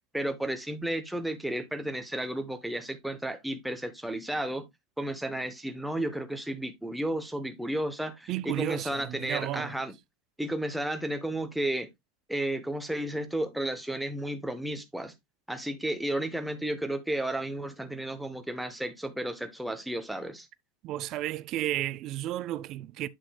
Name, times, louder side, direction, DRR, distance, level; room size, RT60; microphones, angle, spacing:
voice 1, 0.1-4.7 5.0-9.9 10.4-11.9 12.3-15.1 15.5-20.5, right 1 dB, ahead, 0.8 m, -33 dB
voice 2, 8.3-9.8 20.8-23.1, right 14 dB, 35° right, 0.4 m, -33 dB
8.1 x 6.2 x 2.2 m
supercardioid pair, 165°, 0 cm